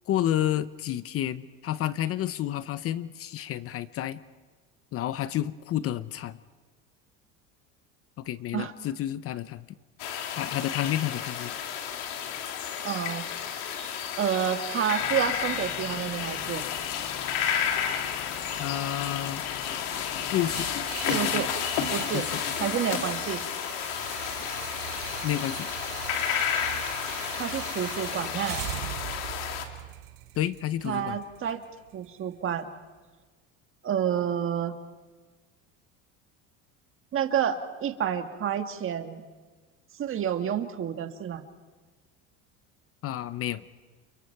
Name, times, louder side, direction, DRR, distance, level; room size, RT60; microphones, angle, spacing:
voice 1, 0.1-4.2 4.9-6.4 8.2-9.7 10.3-11.5 18.6-19.5 20.3-20.7 22.1-22.4 25.2-25.7 30.4-31.2 43.0-43.6, left 12 dB, 40° left, 15 dB, 0.7 m, -30 dB
sound 1, 10.0-29.7, left 8 dB, 85° left, 2.7 m, -31 dB
voice 2, 12.8-13.2 14.2-16.6 21.1-21.5 21.9-22.3 22.6-23.4 27.4-28.6 30.8-31.6 31.9-32.6 33.8-34.7 37.1-39.2 40.0-41.4, right 9 dB, 35° right, 7 dB, 1.6 m, -29 dB
sound 2, 15.0-20.8, left 10 dB, 70° left, 1.5 m, -44 dB
sound 3, 20.4-32.4, right 16 dB, 70° right, 1.0 m, -41 dB
29.5 x 29.0 x 4.6 m, 1.4 s
cardioid pair, 130°, 35 cm